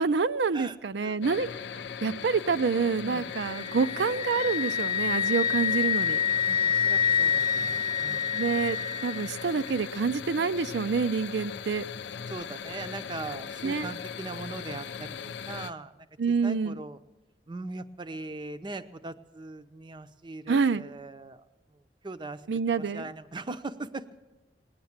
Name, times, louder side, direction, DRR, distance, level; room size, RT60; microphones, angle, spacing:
voice 1, 0.0-1.5 2.0-6.2 8.3-8.8 9.0-11.8 13.6-13.9 16.2-16.8 20.5-20.8 22.5-23.0, right 5 dB, 70° right, 13 dB, 0.5 m, -27 dB
voice 2, 0.5-1.2 3.0-3.3 6.5-8.6 12.3-15.9 16.3-17.0 17.5-21.4 22.0-22.4 22.8-24.0, right 2 dB, 25° right, 10 dB, 0.6 m, -40 dB
sound 1, 1.2-15.7, left 7 dB, 70° left, 0.5 m, -39 dB
Wind instrument woodwind instrument, 3.4-9.3, left 7 dB, 20° left, 0.9 m, -27 dB
19.0 x 10.5 x 7.3 m, 1.0 s
head